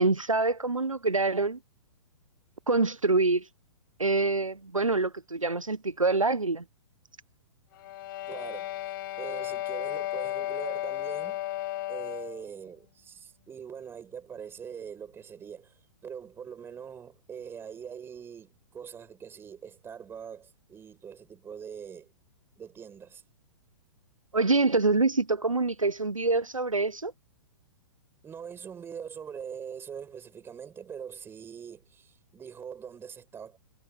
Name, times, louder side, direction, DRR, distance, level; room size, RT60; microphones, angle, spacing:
voice 1, 0.0-1.6 2.7-3.5 4.0-6.6 24.3-27.1, right 3 dB, 85° right, 1.0 m, -25 dB
sound 1, 7.7-12.5, left 15 dB, 40° left, 5.4 m, -34 dB
voice 2, 8.3-8.7 9.2-11.5 11.9-22.1 22.6-23.2 28.2-33.6, right 7 dB, 15° right, 7.3 m, -43 dB
figure-of-eight pair, 115°, 17 cm